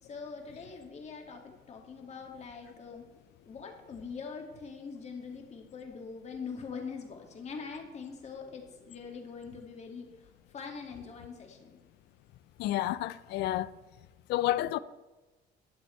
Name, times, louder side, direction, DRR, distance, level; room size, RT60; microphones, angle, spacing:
voice 1, 0.0-3.0 3.5-11.8, left 5 dB, 40° left, 2.0 m, -43 dB
voice 2, 12.6-13.7 14.3-14.8, left 14 dB, 80° left, 0.4 m, -30 dB
11.5 x 7.8 x 4.4 m
cardioid pair, 110°, 17 cm